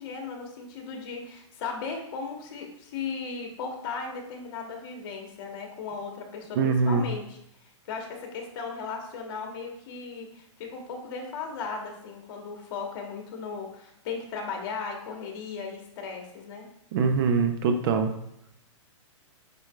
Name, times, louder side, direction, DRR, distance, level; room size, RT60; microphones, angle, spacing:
voice 1, 0.0-7.4 7.9-16.7, left 5 dB, 50° left, 2 dB, 1.1 m, -36 dB
voice 2, 6.6-7.0 16.9-18.1, right 5 dB, 45° right, 7 dB, 0.6 m, -23 dB
5.2 x 4.4 x 2.3 m, 0.75 s
hypercardioid pair, 140°, 16 cm